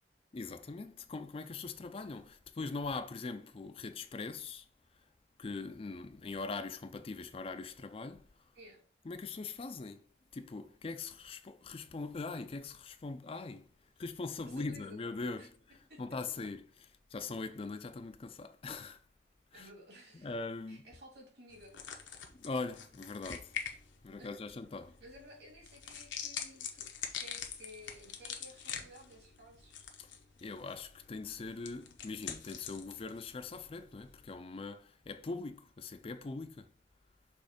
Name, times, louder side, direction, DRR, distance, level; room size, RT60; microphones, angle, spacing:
voice 1, 0.3-4.7 5.4-8.3 9.0-10.0 10.3-13.7 14.0-19.0 19.5-19.7 20.2-20.9 22.3-23.5 24.0-25.0 30.0-30.1 30.4-36.7, left 3 dB, 30° left, 0.4 m, -41 dB
voice 2, 14.5-15.0 15.4-15.5 15.9-16.0 19.5-20.4 20.7-22.2 24.2-24.4 25.0-26.9 27.2-29.7, equal, 60° right, 2.3 m, -55 dB
sound 1, 21.5-34.3, left 8 dB, 90° left, 1.0 m, -46 dB
6.3 x 3.1 x 5.0 m
head